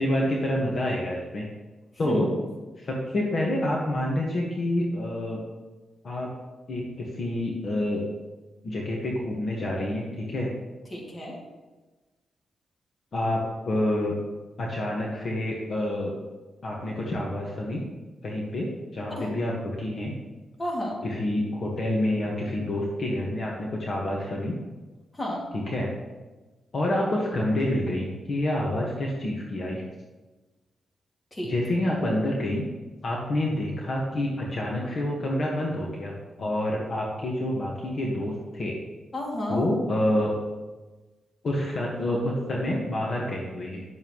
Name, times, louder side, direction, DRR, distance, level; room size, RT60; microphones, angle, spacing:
voice 1, 0.0-1.5 2.0-2.3 2.8-5.4 6.0-6.3 6.7-8.0 8.6-10.5 13.1-13.4 13.6-14.1 14.6-16.1 16.6-17.8 18.2-20.1 21.0-24.5 25.7-25.9 26.7-29.8 31.4-32.6 33.0-36.1 36.4-38.8 39.5-40.3 41.4-43.8, left 1 dB, 50° left, -2 dB, 1.5 m, -28 dB
voice 2, 10.9-11.3 19.1-19.5 20.6-21.0 25.1-25.4 31.3-31.5 39.1-39.6, left 1 dB, 20° left, -3 dB, 2.4 m, -31 dB
10.5 x 7.2 x 3.1 m, 1.2 s
cardioid pair, 100°, 0 cm